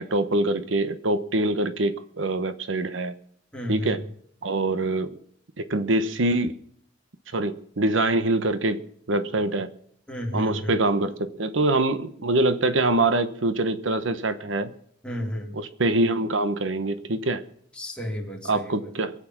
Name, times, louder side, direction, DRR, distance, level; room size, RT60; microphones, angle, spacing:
voice 1, 0.0-3.1 3.7-4.0 4.4-5.1 5.6-6.6 7.3-8.8 9.1-9.7 10.3-14.7 15.5-17.4 18.4-19.1, right 2 dB, 90° right, 11 dB, 1.0 m, -24 dB
voice 2, 3.5-3.9 10.1-10.7 15.0-15.5 17.8-18.9, equal, 5° left, -1 dB, 3.0 m, -32 dB
22.5 x 8.6 x 6.0 m, 0.66 s
head